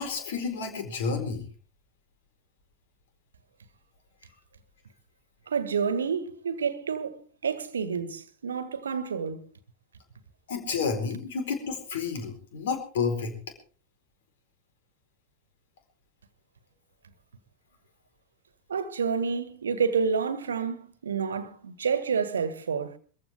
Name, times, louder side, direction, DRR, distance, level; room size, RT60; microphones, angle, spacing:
voice 1, 0.0-1.4 10.5-13.4, left 5 dB, 60° left, 4.3 m, -30 dB
voice 2, 5.5-9.4 18.7-23.0, right 6 dB, 70° right, 1.6 m, -29 dB
23.0 x 15.0 x 3.6 m
figure-of-eight pair, 90°, 0 cm